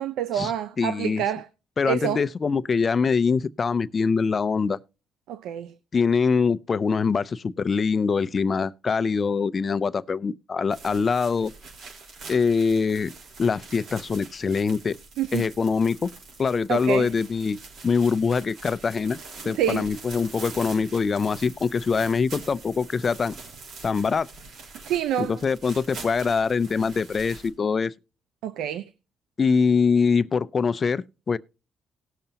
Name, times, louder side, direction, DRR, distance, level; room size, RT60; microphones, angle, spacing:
voice 1, 0.0-1.5 1.8-2.2 5.3-5.7 15.2-15.4 16.7-17.1 19.4-19.9 24.9-25.4 28.4-28.8, right 10 dB, 85° right, 0.7 m, -27 dB
voice 2, 0.8-1.2 1.8-4.8 5.9-11.5 12.3-13.1 13.4-15.0 15.3-16.1 16.4-17.6 17.8-19.2 19.4-23.3 23.8-24.3 25.2-27.9 29.4-31.4, left 5 dB, 40° left, 0.5 m, -23 dB
sound 1, 10.7-27.5, right 3 dB, 70° right, 5.0 m, -44 dB
18.5 x 6.7 x 2.9 m
cardioid pair, 90°, 0 cm